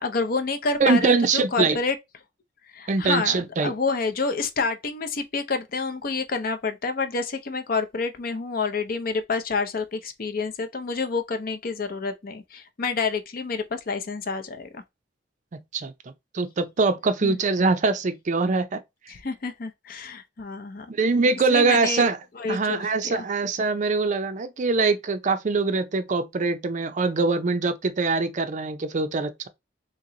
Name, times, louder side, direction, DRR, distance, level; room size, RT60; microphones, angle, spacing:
voice 1, 0.0-2.0 2.7-14.8 17.2-17.4 19.1-20.9 21.5-22.1 22.4-23.2, left 4 dB, 50° left, 0.6 m, -28 dB
voice 2, 0.8-1.8 2.9-3.7 15.5-15.9 16.3-18.8 20.9-22.2 22.5-29.5, right 4 dB, 40° right, 0.4 m, -23 dB
3.0 x 2.9 x 3.7 m
head